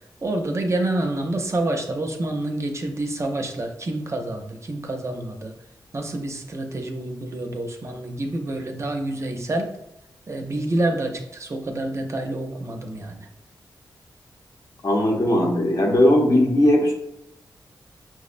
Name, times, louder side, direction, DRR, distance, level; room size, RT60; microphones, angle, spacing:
voice 1, 0.2-5.5 5.9-9.7 10.3-13.3, right 1 dB, 40° right, 4 dB, 0.5 m, -27 dB
voice 2, 14.8-16.9, left 1 dB, 50° left, 1 dB, 0.8 m, -18 dB
5.7 x 2.0 x 2.5 m, 0.85 s
wide cardioid pair, 85°, 8 cm